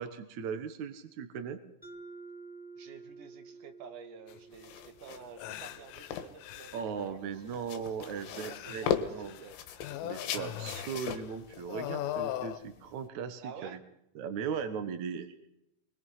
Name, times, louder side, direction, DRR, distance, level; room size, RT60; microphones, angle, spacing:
voice 1, 0.0-1.6 6.7-8.9 9.1-9.4 10.0-13.8 14.1-15.5, right 6 dB, 75° right, 9 dB, 1.7 m, -38 dB
Mallet percussion, 1.8-6.4, right 3 dB, 5° left, 0.7 m, -51 dB
voice 2, 2.8-9.6 13.4-13.8, right 6 dB, 55° right, 7 dB, 2.4 m, -50 dB
sound 1, 4.3-4.4 4.9-5.0 5.4-7.0 8.0-9.5 9.8-11.4 11.6-12.6, left 12 dB, 90° left, 3.5 m, -39 dB
sound 2, 4.5-13.1, left 8 dB, 70° left, 3.7 m, -39 dB
25.0 x 22.5 x 5.7 m, 0.83 s
omnidirectional pair, 5.5 m